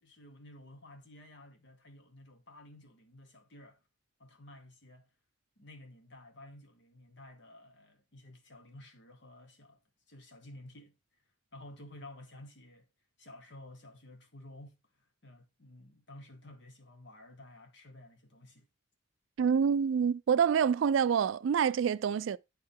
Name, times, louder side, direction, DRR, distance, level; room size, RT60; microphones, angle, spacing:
voice 1, 0.0-3.8 4.2-5.1 5.6-9.8 10.1-11.0 11.5-12.8 13.2-14.8 15.2-18.7, left 1 dB, 60° left, 1.3 m, -53 dB
voice 2, 19.4-22.4, right 7 dB, 70° right, 0.3 m, -27 dB
8.6 x 4.3 x 3.6 m
head